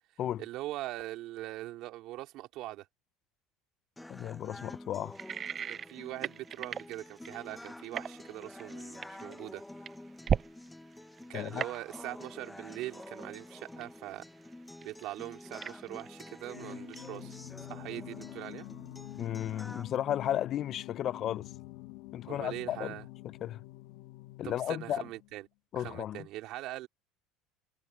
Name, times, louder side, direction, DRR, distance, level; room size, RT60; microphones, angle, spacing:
voice 1, 0.4-2.9 5.7-9.6 11.3-14.3 14.8-17.4 17.7-18.7 22.3-23.0 24.4-25.5 25.7-26.9, right 16 dB, 60° right, 3.7 m, -42 dB
sound 1, 4.0-20.0, left 1 dB, 5° left, 0.7 m, -48 dB
voice 2, 4.1-5.2 11.3-11.6 19.2-21.5 22.1-23.0 23.4-23.6 24.4-25.0 25.7-26.3, left 11 dB, 45° left, 0.5 m, -34 dB
sound 2, 5.1-10.7 10.9-11.3 11.6-12.3 12.7-14.5 14.8-16.7 16.9-17.4, right 8 dB, 35° right, 0.4 m, -36 dB
Singing, 16.5-25.4, left 19 dB, 75° left, 2.5 m, -47 dB
supercardioid pair, 125°, 0 cm